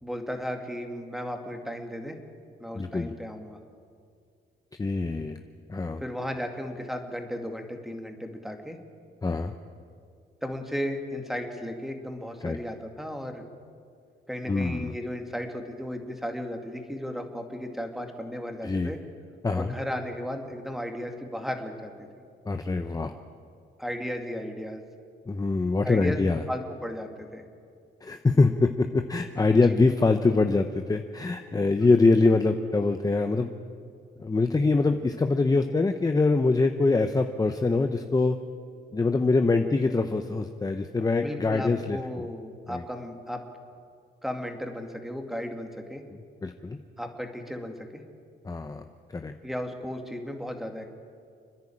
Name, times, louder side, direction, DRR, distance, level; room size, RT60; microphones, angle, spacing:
voice 1, 0.0-2.2 2.6-3.6 6.0-8.8 10.4-13.4 14.3-19.0 19.5-21.9 23.8-24.8 25.8-27.4 29.7-29.8 41.2-43.4 44.2-46.0 47.0-48.0 49.4-50.8, equal, ahead, 4 dB, 2.4 m, -35 dB
voice 2, 2.7-3.1 4.8-5.4 5.7-6.0 9.2-9.5 12.4-12.6 14.5-14.9 18.6-18.9 19.4-19.7 22.5-23.1 25.3-26.4 28.0-33.5 34.2-38.4 38.9-42.0 42.7-42.8 46.4-46.8 48.4-48.8 49.1-49.3, left 3 dB, 20° left, 6 dB, 0.9 m, -24 dB
30.0 x 10.5 x 8.7 m, 2.3 s
cardioid pair, 90°, 20 cm